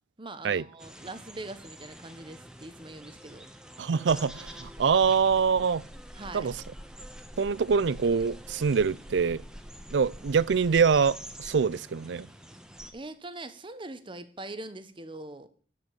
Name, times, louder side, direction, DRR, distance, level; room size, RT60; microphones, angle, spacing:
voice 1, 0.2-3.5 6.1-6.5 12.9-15.5, right 2 dB, 30° right, 1.1 m, -42 dB
sound 1, 0.8-12.9, equal, 5° right, 1.3 m, -46 dB
voice 2, 3.8-5.8 6.3-6.5 7.4-9.4 9.9-12.3, right 6 dB, 90° right, 0.5 m, -24 dB
13.5 x 5.3 x 9.1 m
head